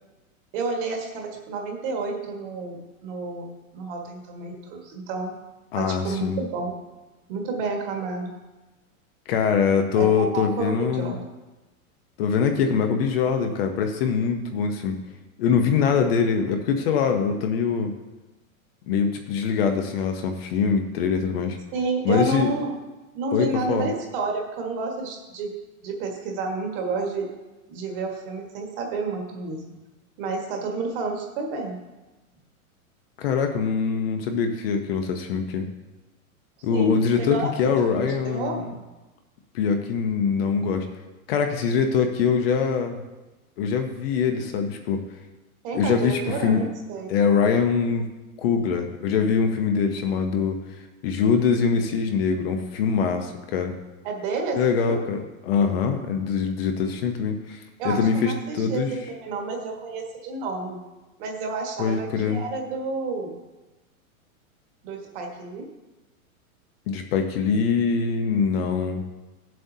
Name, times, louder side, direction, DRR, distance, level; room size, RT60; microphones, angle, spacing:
voice 1, 0.5-5.3 5.7-6.8 7.3-8.4 9.9-11.2 21.7-22.7 23.1-25.6 25.8-27.3 27.7-29.6 30.2-31.8 36.7-38.6 45.6-47.1 54.0-55.0 57.8-60.8 61.2-63.3 64.8-65.7, right 3 dB, 40° right, 2 dB, 1.6 m, -30 dB
voice 2, 5.7-6.4 9.3-11.1 12.2-15.0 15.4-17.9 18.9-21.6 22.0-22.5 23.3-23.9 33.2-35.7 36.6-38.7 39.5-40.9 41.3-43.0 43.6-45.0 45.7-46.6 47.1-48.1 48.4-50.6 51.0-53.7 54.6-57.6 57.8-58.9 61.8-62.4 66.9-69.0, left 6 dB, 45° left, 5 dB, 0.9 m, -23 dB
14.0 x 7.7 x 2.8 m, 1.1 s
supercardioid pair, 165°, 42 cm